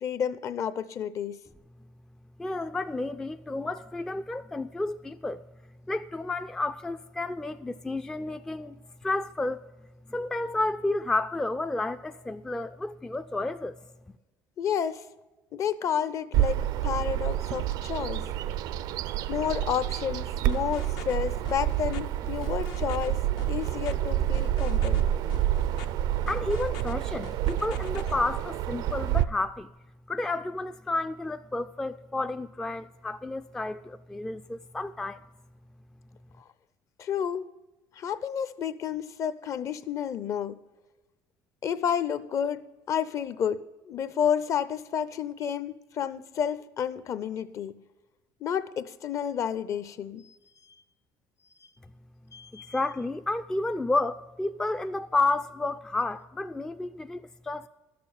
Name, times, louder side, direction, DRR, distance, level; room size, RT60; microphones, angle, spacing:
voice 1, 0.0-1.4 14.6-15.0 15.5-16.6 16.8-18.2 19.3-23.2 23.5-25.1 37.0-37.5 38.0-40.6 41.6-42.6 42.9-43.6 43.9-47.7 48.4-50.4 52.3-52.7, left 8 dB, 45° left, 0.6 m, -30 dB
voice 2, 2.4-5.4 5.9-9.6 10.1-13.8 26.3-29.7 30.1-35.2 52.5-57.7, left 2 dB, 10° left, 0.3 m, -31 dB
Bird vocalization bird call bird song, 16.3-29.2, right 12 dB, 70° right, 0.4 m, -28 dB
sound 1, 20.5-21.2 21.4-22.0 22.4-23.1 23.4-23.9 24.3-25.0 25.3-25.9 26.3-26.9 27.2-28.1, left 9 dB, 75° left, 0.8 m, -44 dB
12.0 x 6.8 x 7.0 m
cardioid pair, 125°, 7 cm